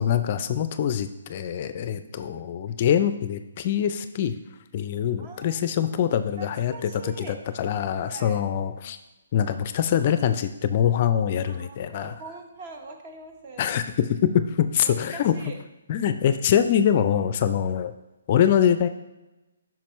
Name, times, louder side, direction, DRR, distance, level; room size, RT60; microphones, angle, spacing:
voice 1, 0.0-4.4 4.7-9.0 9.3-12.2 13.6-15.3 15.9-17.9 18.3-18.9, left 9 dB, 40° left, 11 dB, 0.4 m, -24 dB
voice 2, 1.8-2.3 5.2-5.9 6.4-7.4 8.1-8.4 11.5-13.8 14.8-15.6, right 3 dB, 35° right, 4 dB, 1.1 m, -43 dB
8.5 x 5.9 x 3.1 m, 1.0 s
figure-of-eight pair, 140°, 0 cm